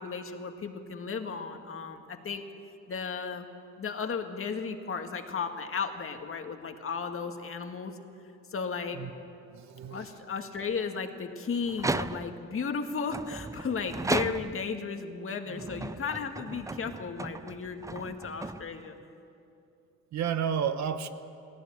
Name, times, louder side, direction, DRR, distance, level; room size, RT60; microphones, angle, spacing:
voice 1, 0.0-2.5 2.9-3.5 3.8-8.0 8.5-9.0 9.9-19.0, left 5 dB, 45° left, 5 dB, 1.9 m, -35 dB
voice 2, 9.5-10.1 20.1-21.1, right 8 dB, 65° right, 10 dB, 1.2 m, -31 dB
sound 1, 11.7-12.5 13.1-14.8 15.5-19.0, right 3 dB, 10° right, 0.4 m, -35 dB
18.0 x 17.0 x 8.8 m, 2.6 s
cardioid pair, 90°, 30 cm